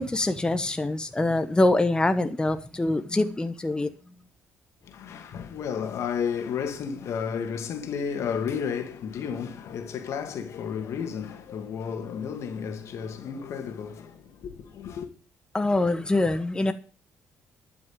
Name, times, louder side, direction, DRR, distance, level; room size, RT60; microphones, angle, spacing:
voice 1, 0.0-3.9 15.5-16.7, left 2 dB, 15° left, 1.2 m, -24 dB
voice 2, 4.9-15.1, left 7 dB, 65° left, 2.2 m, -32 dB
12.0 x 6.2 x 9.0 m
supercardioid pair, 65°, 5 cm